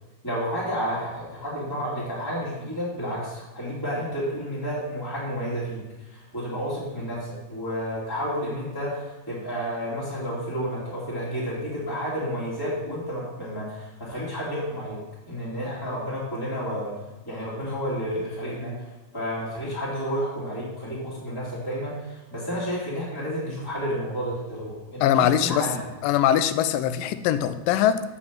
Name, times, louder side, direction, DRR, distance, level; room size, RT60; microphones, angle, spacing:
voice 1, 0.2-5.8 6.1-15.0 15.3-16.9 17.2-18.7 19.1-25.0 25.4-25.8, equal, 5° left, -8 dB, 2.2 m, -31 dB
voice 2, 25.0-25.7 26.0-28.0, left 10 dB, 80° left, 12 dB, 2.1 m, -22 dB
8.4 x 5.1 x 7.4 m, 1.1 s
omnidirectional pair, 4.3 m